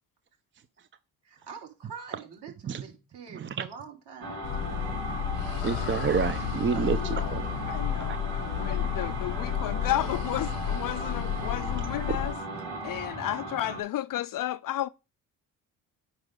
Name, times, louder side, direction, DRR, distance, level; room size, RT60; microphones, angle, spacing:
voice 1, 1.2-4.7 5.4-5.7 6.7-7.1, right 6 dB, 55° right, 3.5 m, -45 dB
voice 2, 3.3-3.7 5.6-7.4 8.1-8.2 12.1-12.2, right 6 dB, 25° right, 0.6 m, -29 dB
sound 1, 4.2-13.8, right 2 dB, 90° right, 3.0 m, -37 dB
sound 2, 4.4-12.3, left 10 dB, 80° left, 1.0 m, -32 dB
voice 3, 7.0-7.3 7.7-8.2 8.6-12.3 12.8-14.9, left 13 dB, 45° left, 0.5 m, -32 dB
8.9 x 5.3 x 3.7 m
hypercardioid pair, 55°, 47 cm